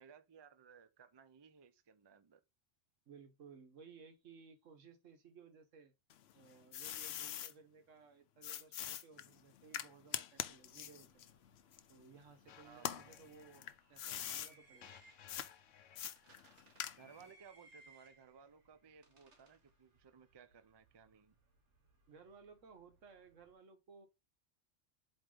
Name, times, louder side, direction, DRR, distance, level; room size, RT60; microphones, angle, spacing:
voice 1, 0.0-2.4 12.6-13.1 16.9-21.3, right 6 dB, 35° right, 0.4 m, -60 dB
voice 2, 3.1-5.9 6.3-11.3 11.9-15.0 22.1-24.1, right 5 dB, 85° right, 1.4 m, -59 dB
sound 1, 6.1-7.5 8.4-12.3 12.7-14.5 15.3-15.5 16.0-17.3, left 10 dB, 65° left, 0.8 m, -44 dB
sound 2, 10.5-23.5, right 2 dB, 70° right, 1.8 m, -68 dB
sound 3, 12.5-17.5, left 9 dB, 85° left, 1.1 m, -62 dB
7.9 x 3.1 x 3.8 m
omnidirectional pair, 1.3 m